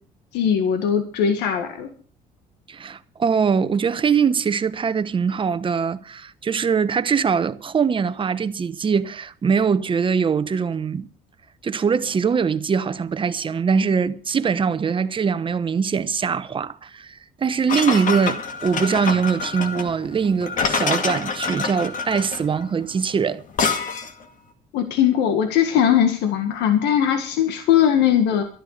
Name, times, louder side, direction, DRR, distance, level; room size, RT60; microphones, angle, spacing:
voice 1, 0.3-1.9 24.7-28.4, left 9 dB, 90° left, 1.8 m, -19 dB
voice 2, 2.7-11.1 11.6-23.4, right 6 dB, 30° right, 1.0 m, -22 dB
sound 1, 17.7-24.2, left 4 dB, 50° left, 2.3 m, -26 dB
13.0 x 11.0 x 6.6 m
cardioid pair, 110°, 17 cm